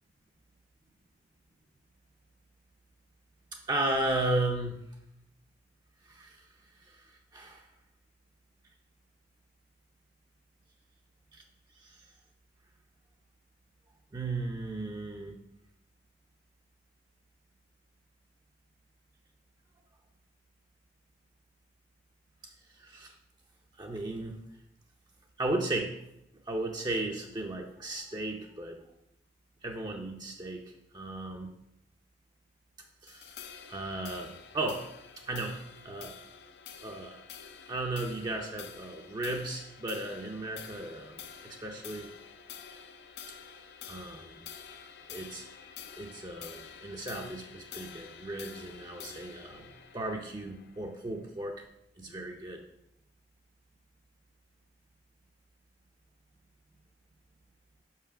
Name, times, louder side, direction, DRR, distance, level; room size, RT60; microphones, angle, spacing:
voice 1, 3.7-4.8 6.0-6.5 6.8-7.7 11.3-11.4 11.8-12.0 14.1-15.4 22.7-23.2 23.7-24.4 25.4-25.9 26.5-28.8 29.6-31.5 33.0-33.3 33.7-34.9 35.3-35.6 35.8-36.1 36.8-37.2 37.7-42.1 43.8-44.4 45.1-45.5 46.0-51.6 52.0-52.6, right 2 dB, 25° right, 1 dB, 0.5 m, -35 dB
sound 1, 33.1-51.7, left 7 dB, 65° left, 0.6 m, -49 dB
5.6 x 5.5 x 4.9 m, 0.82 s
head